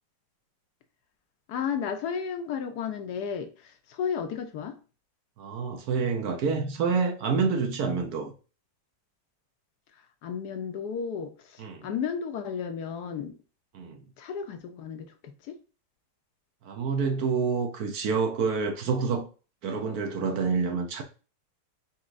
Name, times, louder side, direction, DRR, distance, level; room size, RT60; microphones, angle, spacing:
voice 1, 1.5-4.8 9.9-13.4 14.2-15.6, left 7 dB, 75° left, 1.2 m, -33 dB
voice 2, 5.4-8.3 11.6-11.9 13.7-14.0 16.6-19.3 19.6-21.0, right 5 dB, 65° right, 1.1 m, -28 dB
4.5 x 4.2 x 2.5 m
omnidirectional pair, 1.8 m